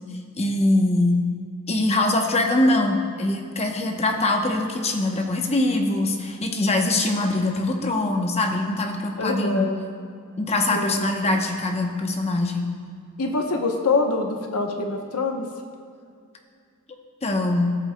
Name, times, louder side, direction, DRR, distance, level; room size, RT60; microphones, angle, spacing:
voice 1, 0.4-1.2 1.7-9.7 10.4-12.7 17.2-17.8, left 2 dB, 30° left, 3 dB, 0.8 m, -23 dB
voice 2, 9.2-9.9 10.7-11.4 13.2-15.5, left 3 dB, 80° left, 3 dB, 0.9 m, -25 dB
14.5 x 8.0 x 2.2 m, 2.2 s
head